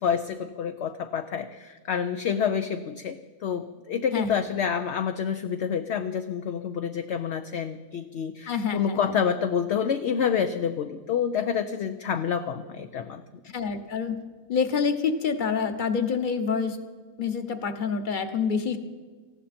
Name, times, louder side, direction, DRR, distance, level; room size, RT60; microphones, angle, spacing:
voice 1, 0.0-13.2, left 7 dB, 60° left, 7 dB, 0.9 m, -28 dB
voice 2, 4.1-4.4 8.5-9.1 13.4-14.2 14.5-16.8 17.2-18.8, left 6 dB, 40° left, 8 dB, 1.2 m, -27 dB
19.5 x 15.5 x 4.3 m, 1.4 s
omnidirectional pair, 1.5 m